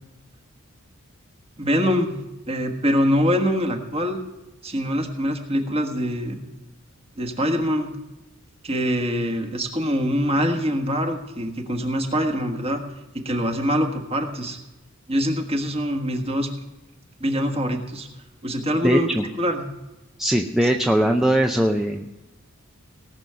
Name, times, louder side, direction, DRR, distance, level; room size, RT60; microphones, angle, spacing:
voice 1, 1.6-2.2 2.5-4.2 4.6-6.4 7.2-7.9 8.6-12.8 13.1-14.6 15.1-16.5 17.2-18.1 18.4-19.1 19.4-19.6, equal, 30° right, 4 dB, 1.5 m, -24 dB
voice 2, 18.8-19.2 20.2-22.1, right 1 dB, ahead, 2 dB, 0.6 m, -20 dB
18.5 x 6.3 x 6.8 m, 1.0 s
head